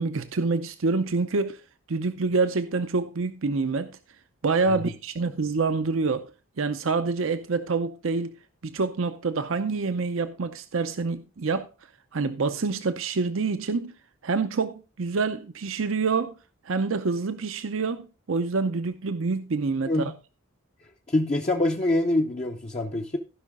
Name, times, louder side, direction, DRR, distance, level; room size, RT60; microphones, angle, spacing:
voice 1, 0.0-1.6 1.9-4.0 4.4-6.3 6.6-8.3 8.6-11.7 12.1-13.9 14.2-16.3 16.7-20.1, right 4 dB, 70° right, 0.6 m, -27 dB
voice 2, 21.1-23.2, left 1 dB, 30° left, 0.6 m, -25 dB
15.5 x 5.5 x 3.6 m
head